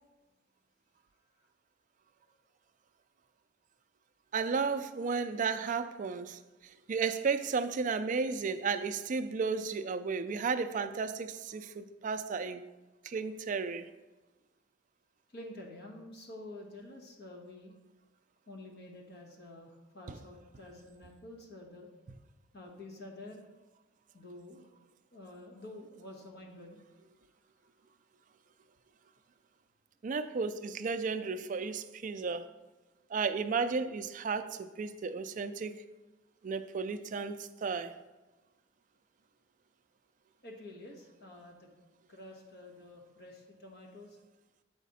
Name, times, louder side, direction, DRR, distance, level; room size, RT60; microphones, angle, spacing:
voice 1, 4.3-6.4 6.9-12.6 13.0-13.9 20.1-20.2 30.0-32.5 33.1-35.8 36.4-37.9, right 5 dB, 40° right, 0.3 m, -33 dB
voice 2, 15.3-17.7 18.5-21.9 22.5-23.4 24.1-24.7 25.1-26.8 40.4-41.7 42.1-44.2, left 1 dB, 55° left, 1.2 m, -49 dB
7.2 x 5.0 x 4.1 m
head